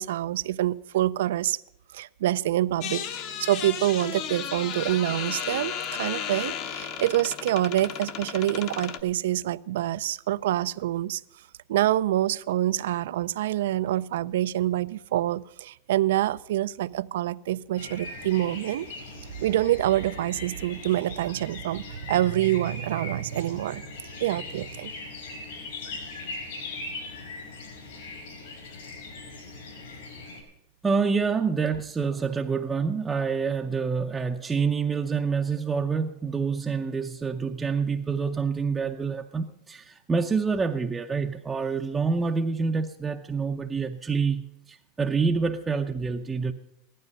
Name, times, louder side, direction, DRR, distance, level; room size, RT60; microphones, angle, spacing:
voice 1, 0.0-1.6 1.9-3.0 3.4-11.2 11.7-18.9 19.4-24.9, right 13 dB, 80° right, 18 dB, 0.5 m, -26 dB
sound 1, 2.8-9.0, left 8 dB, 40° left, 0.9 m, -34 dB
sound 2, 17.7-30.4, left 3 dB, 75° left, 5.8 m, -40 dB
voice 2, 30.8-46.5, right 5 dB, 10° right, 2 dB, 0.6 m, -27 dB
15.5 x 12.5 x 5.3 m, 0.86 s
supercardioid pair, 165°, 0 cm